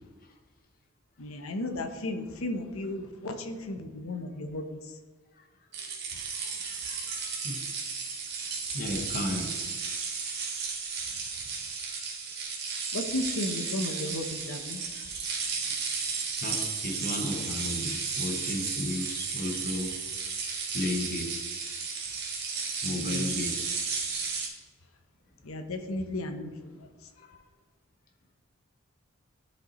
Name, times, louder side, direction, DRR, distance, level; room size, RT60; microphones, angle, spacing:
voice 1, 1.2-4.6 12.9-14.8 22.9-23.3 25.5-26.5, left 1 dB, 80° left, 6 dB, 0.8 m, -34 dB
sound 1, 5.7-24.5, right 5 dB, 50° right, 1.5 m, -34 dB
voice 2, 6.3-7.6 8.7-10.5 11.9-12.0 13.9-14.0 14.9-15.0 16.4-20.0 20.7-21.3 22.8-23.6 27.2-27.4, left 1 dB, 40° left, 3 dB, 1.0 m, -35 dB
11.5 x 5.2 x 3.0 m, 1.5 s
head